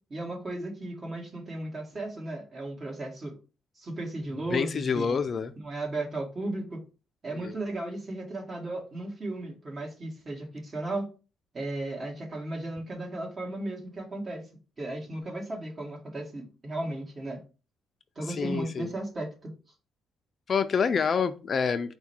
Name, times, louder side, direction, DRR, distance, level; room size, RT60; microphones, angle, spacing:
voice 1, 0.1-3.4 3.7-5.1 5.6-6.8 7.2-11.1 11.5-14.4 14.8-17.4 18.1-19.5, right 2 dB, 35° right, 1.6 m, -35 dB
voice 2, 4.5-5.5 7.3-7.5 18.3-18.9 20.5-22.0, left 6 dB, 45° left, 0.4 m, -27 dB
4.6 x 2.2 x 4.3 m
cardioid pair, 90°, 0 cm